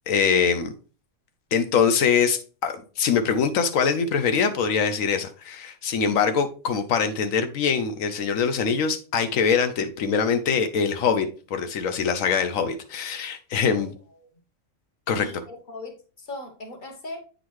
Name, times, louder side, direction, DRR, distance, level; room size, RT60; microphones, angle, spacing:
voice 1, 0.1-0.7 1.5-13.9 15.1-15.3, left 6 dB, 80° left, 1.1 m, -23 dB
voice 2, 15.1-17.2, left 2 dB, 40° left, 1.2 m, -39 dB
8.5 x 3.9 x 3.1 m
omnidirectional pair, 1.4 m